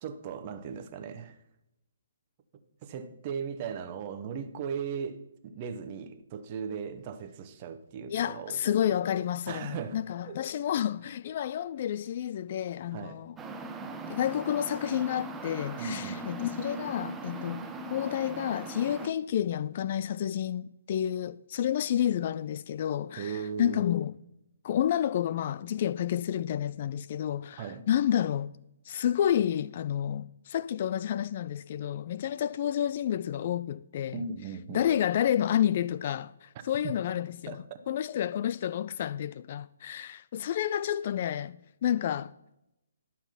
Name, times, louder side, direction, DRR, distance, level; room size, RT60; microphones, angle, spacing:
voice 1, 0.0-1.3 2.8-8.6 9.5-10.4 12.9-13.2 15.8-16.3 23.2-23.8 27.6-27.8 34.1-34.9 36.5-36.9 37.5-37.8, right 6 dB, 35° right, 1.0 m, -38 dB
voice 2, 8.1-13.4 14.1-24.1 24.6-28.5 28.9-34.2 34.7-42.3, left 10 dB, 40° left, 0.3 m, -30 dB
sound 1, 13.4-19.1, right 3 dB, 10° right, 0.7 m, -40 dB
11.5 x 5.9 x 5.8 m
figure-of-eight pair, 135°, 0 cm